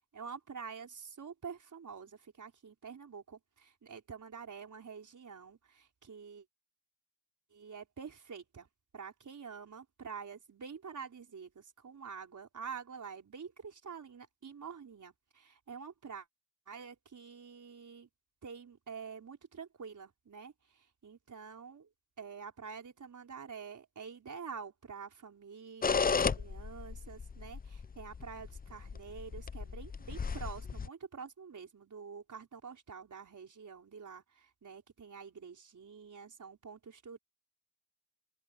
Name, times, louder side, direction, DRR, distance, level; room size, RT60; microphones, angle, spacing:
voice 1, 0.1-6.4 7.5-8.7 8.9-16.3 16.7-18.1 18.4-21.9 22.2-37.2, right 6 dB, 45° right, 4.9 m, -47 dB
sound 1, 25.8-30.9, left 5 dB, 20° left, 0.6 m, -34 dB
cardioid pair, 95°, 42 cm